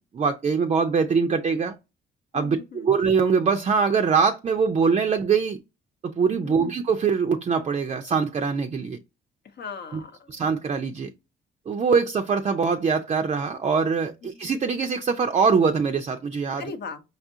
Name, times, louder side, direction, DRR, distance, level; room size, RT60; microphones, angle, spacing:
voice 1, 0.0-1.8 2.3-5.6 6.0-9.0 10.3-11.1 11.7-16.6, right 5 dB, 35° right, 0.4 m, -23 dB
voice 2, 2.3-3.0 6.4-6.7 9.4-10.4 14.2-14.4 16.6-17.0, left 5 dB, 55° left, 0.8 m, -39 dB
5.3 x 2.4 x 2.7 m
cardioid pair, 90°, 20 cm